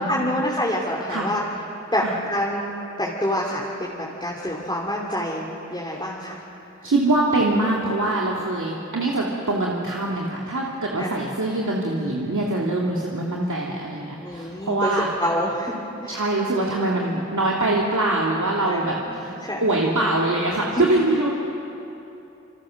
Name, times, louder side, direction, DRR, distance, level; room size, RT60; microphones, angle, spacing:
voice 1, 0.0-1.4 1.9-6.4 11.0-11.2 14.2-14.9 15.2-15.7 16.0-16.2 18.7-19.6 20.7-21.0, equal, 15° left, -3 dB, 3.0 m, -27 dB
voice 2, 6.8-15.1 16.1-19.3 19.6-21.3, right 2 dB, 85° right, -3 dB, 2.4 m, -23 dB
27.0 x 26.0 x 6.4 m, 2.9 s
wide cardioid pair, 50°, 29 cm